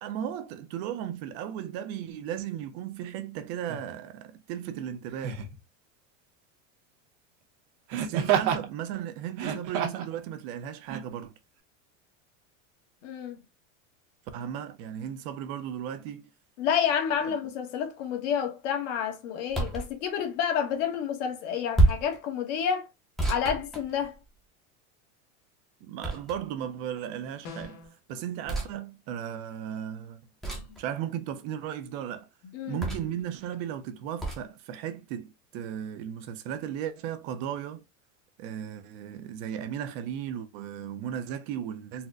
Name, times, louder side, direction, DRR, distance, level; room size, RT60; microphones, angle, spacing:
voice 1, 0.0-5.4 7.9-11.3 14.3-16.3 17.2-17.3 25.8-27.8 28.1-30.2 30.8-32.3 32.7-37.8 38.4-42.1, right 10 dB, 45° right, 0.5 m, -36 dB
Laughter, 3.7-3.9 5.2-5.6 7.9-8.7 9.3-10.1 10.9-11.0, right 8 dB, 70° right, 1.0 m, -29 dB
voice 2, 13.0-13.4 16.6-22.9 23.3-24.1 30.5-30.6 32.5-32.8, left 8 dB, 65° left, 1.1 m, -29 dB
sound 1, 19.5-19.9 21.7-22.2 23.2-24.4 26.0-26.6 28.5-28.7 30.4-30.8 32.8-33.2 34.2-34.4, right 2 dB, ahead, 0.5 m, -27 dB
sound 2, 27.4-28.0, left 3 dB, 45° left, 1.0 m, -42 dB
4.1 x 2.1 x 2.4 m
supercardioid pair, 150°, 39 cm